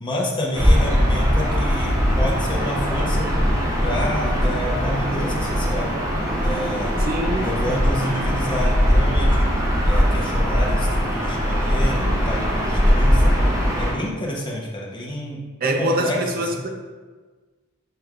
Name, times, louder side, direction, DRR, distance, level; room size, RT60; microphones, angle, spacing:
voice 1, 0.0-3.3 3.8-5.9 6.4-6.9 7.4-9.4 9.8-13.3 13.8-16.6, equal, 25° left, -3 dB, 0.8 m, -29 dB
Gull seagull / Ocean, 0.5-13.9, equal, 15° right, 0.8 m, -20 dB
voice 2, 7.0-7.5 15.6-16.7, right 1 dB, 45° right, 3 dB, 0.5 m, -24 dB
6.6 x 3.1 x 2.4 m, 1.4 s
head